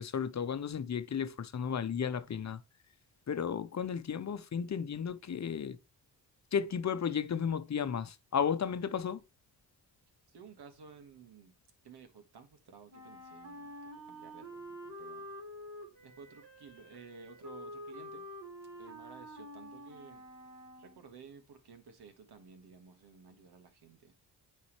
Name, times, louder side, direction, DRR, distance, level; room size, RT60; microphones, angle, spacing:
voice 1, 0.0-2.6 3.3-5.8 6.5-9.2, left 7 dB, 45° left, 0.8 m, -34 dB
voice 2, 10.3-11.5 11.8-13.8 14.1-15.3 16.0-18.2 18.8-20.2 20.8-24.1, right 5 dB, 70° right, 1.7 m, -54 dB
Wind instrument woodwind instrument, 12.9-21.0, equal, 40° right, 4.4 m, -48 dB
9.5 x 4.2 x 3.2 m
cardioid pair, 65°, 40 cm